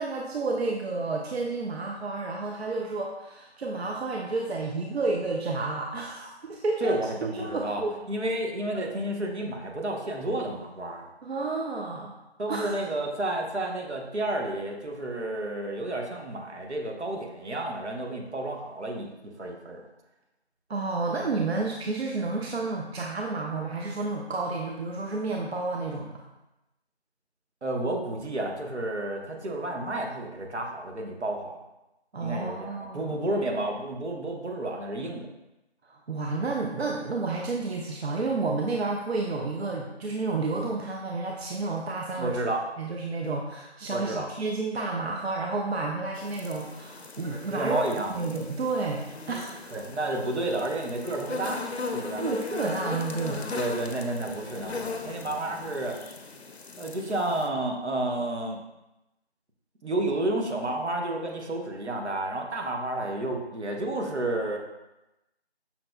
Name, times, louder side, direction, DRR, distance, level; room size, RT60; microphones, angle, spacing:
voice 1, 0.0-7.9 8.7-8.8 11.2-12.2 12.5-12.8 20.7-26.2 32.1-33.2 35.8-42.4 42.8-47.8 48.1-49.8 52.2-53.5, right 3 dB, 70° right, 0 dB, 0.5 m, -31 dB
voice 2, 6.8-11.1 12.4-19.1 19.4-19.8 27.6-31.6 32.2-35.3 42.2-42.6 43.9-44.3 47.5-48.1 49.7-51.6 51.9-52.2 53.5-56.0 56.8-58.6 59.8-64.6, right 1 dB, 90° right, 1 dB, 0.8 m, -31 dB
sound 1, 46.1-57.5, left 4 dB, 70° left, 0.5 m, -38 dB
5.6 x 2.0 x 2.3 m, 0.95 s
figure-of-eight pair, 175°, 33 cm